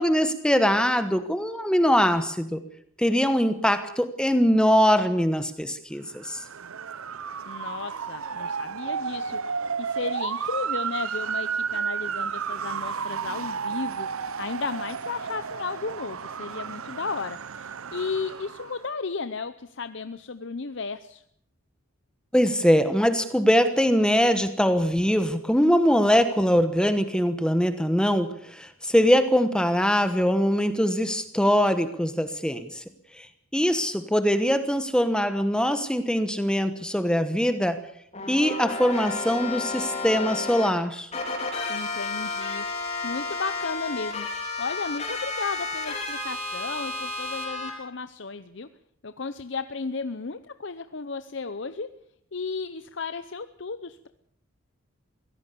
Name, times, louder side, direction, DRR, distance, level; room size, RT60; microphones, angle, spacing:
voice 1, 0.0-2.6 3.0-6.4 22.3-32.8 33.2-33.3 33.5-37.8 38.3-41.1, equal, 5° left, 9 dB, 1.1 m, -22 dB
Motor vehicle (road) / Siren, 6.1-18.8, right 6 dB, 80° right, 0.8 m, -32 dB
voice 2, 7.5-21.2 41.7-42.7 43.0-44.3 44.6-48.7 49.0-51.9 52.3-54.1, left 4 dB, 55° left, 11 dB, 0.7 m, -34 dB
sound 1, 38.1-40.7 41.1-47.7, left 3 dB, 30° left, 4.1 m, -32 dB
23.0 x 17.0 x 6.9 m, 0.67 s
head